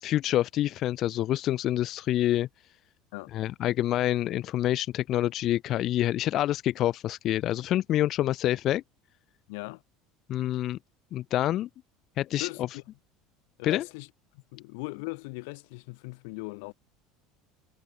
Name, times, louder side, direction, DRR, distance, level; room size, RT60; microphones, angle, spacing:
voice 1, 0.0-2.5 3.3-8.8 10.3-10.8 11.1-11.7 12.2-12.5 13.6-13.9, left 13 dB, 35° left, 2.2 m, -27 dB
voice 2, 9.5-9.8 12.4-12.8 13.6-14.1 14.5-16.7, left 30 dB, 70° left, 7.2 m, -38 dB
cardioid pair, 170°, 0 cm